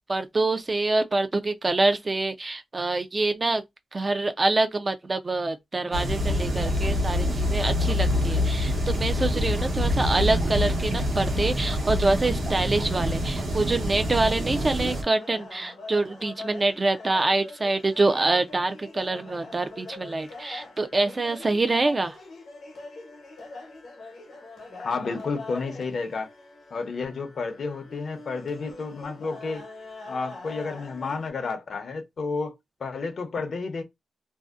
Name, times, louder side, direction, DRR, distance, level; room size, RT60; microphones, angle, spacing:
voice 1, 0.1-3.6 3.9-22.2, right 2 dB, 35° right, 0.4 m, -25 dB
sound 1, 5.9-15.0, left 1 dB, 70° right, 0.9 m, -26 dB
sound 2, 14.5-31.3, left 3 dB, 85° left, 0.9 m, -43 dB
voice 2, 24.8-26.3 26.7-29.7 30.1-32.5 32.8-33.8, left 4 dB, 65° left, 0.7 m, -31 dB
2.6 x 2.1 x 2.3 m
cardioid pair, 85°, 0 cm